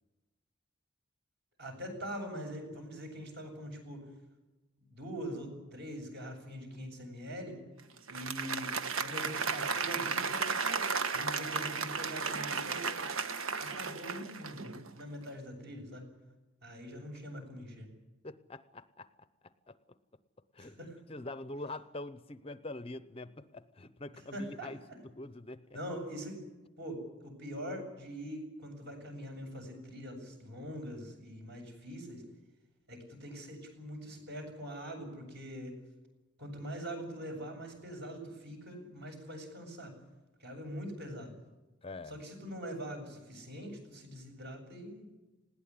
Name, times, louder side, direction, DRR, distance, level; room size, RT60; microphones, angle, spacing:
voice 1, 1.6-4.0 4.8-7.6 8.1-8.7 9.0-10.5 11.1-13.1 13.6-16.1 16.6-17.9 20.6-21.0 24.1-24.7 25.7-26.4 26.8-32.2 32.9-35.7 36.4-39.9 40.4-41.3 42.1-45.1, equal, 55° right, 3 dB, 7.3 m, -43 dB
Applause, 8.0-14.9, right 5 dB, 85° right, 1.3 m, -34 dB
voice 2, 18.2-19.1 19.7-19.8 20.5-20.8 21.1-24.8 25.0-25.6 41.8-42.1, left 2 dB, 25° left, 13 dB, 0.6 m, -44 dB
20.0 x 17.0 x 9.7 m, 1.1 s
head